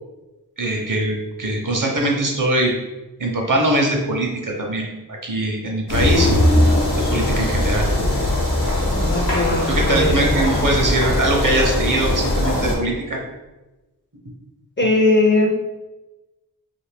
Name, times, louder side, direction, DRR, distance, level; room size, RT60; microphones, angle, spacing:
voice 1, 0.6-2.7 3.2-6.4 7.0-7.9 9.7-13.2, right 1 dB, 55° right, 0 dB, 0.7 m, -22 dB
sound 1, 5.9-12.7, left 1 dB, 75° left, 1.0 m, -20 dB
voice 2, 9.0-10.4 14.8-15.5, left 2 dB, 30° left, 1 dB, 0.4 m, -19 dB
2.7 x 2.5 x 3.3 m, 1.1 s
wide cardioid pair, 60°, 38 cm